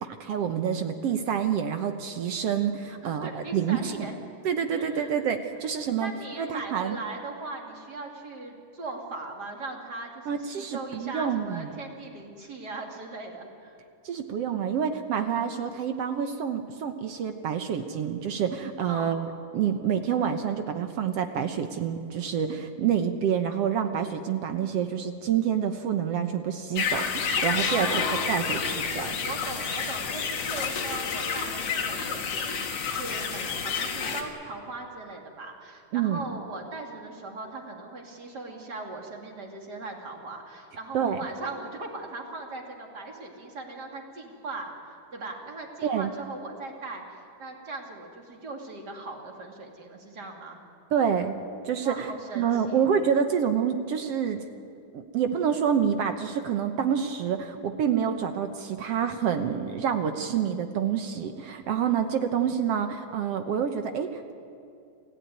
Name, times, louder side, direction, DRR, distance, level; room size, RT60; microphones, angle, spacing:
voice 1, 0.0-4.0 4.5-6.1 6.4-7.0 10.3-11.7 14.1-19.3 19.5-27.9 28.3-29.2 35.9-36.3 40.9-41.2 45.8-46.1 50.9-51.3 51.7-52.1 52.4-54.4 54.9-64.3, right 8 dB, 65° right, 7 dB, 1.7 m, -27 dB
voice 2, 2.9-4.2 4.8-5.1 6.0-13.8 18.9-19.1 27.3-50.6 51.8-52.9, right 3 dB, 30° right, 1 dB, 3.0 m, -39 dB
sound 1, 26.7-34.2, left 6 dB, 85° left, 3.5 m, -29 dB
28.0 x 15.5 x 9.4 m, 2.5 s
omnidirectional pair, 3.7 m